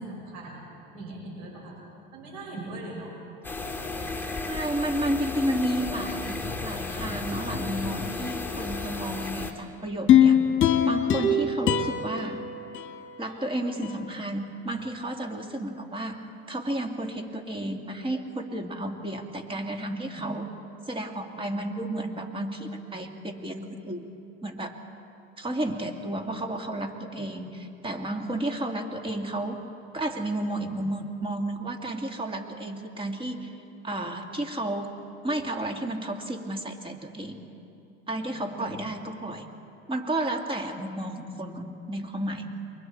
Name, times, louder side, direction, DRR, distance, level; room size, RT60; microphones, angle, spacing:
voice 1, 0.0-1.8 2.1-3.2 38.5-38.8, right 2 dB, 60° right, -2 dB, 6.6 m, -40 dB
sound 1, 3.4-9.5, left 3 dB, 5° left, 2.4 m, -33 dB
voice 2, 4.5-10.4 10.8-12.4 13.2-16.2 16.5-20.5 20.9-24.1 24.4-24.8 25.4-29.6 29.9-33.5 33.8-35.0 35.2-37.5 38.1-39.5 39.9-42.7, right 1 dB, 15° right, 3 dB, 2.4 m, -32 dB
sound 2, 10.1-13.4 13.8-13.9, left 7 dB, 40° left, 1.9 m, -22 dB
28.5 x 23.5 x 4.6 m, 2.7 s
supercardioid pair, 110°, 31 cm